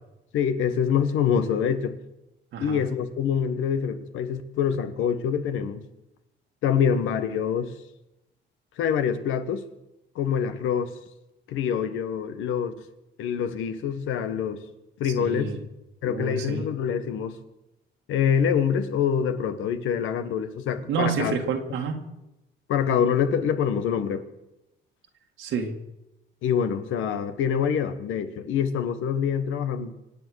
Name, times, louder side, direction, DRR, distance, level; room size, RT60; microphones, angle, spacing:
voice 1, 0.3-2.0 2.6-5.8 6.6-7.7 8.8-9.6 10.1-10.9 11.5-12.7 13.2-14.6 15.0-15.5 16.0-17.4 18.1-21.4 22.7-24.2 26.4-29.9, left 7 dB, 90° left, 1.4 m, -25 dB
voice 2, 2.5-2.8 15.0-15.6 16.0-16.7 20.9-22.1 25.4-25.8, right 5 dB, 80° right, 2.0 m, -29 dB
25.5 x 8.5 x 6.4 m
cardioid pair, 90°, 20 cm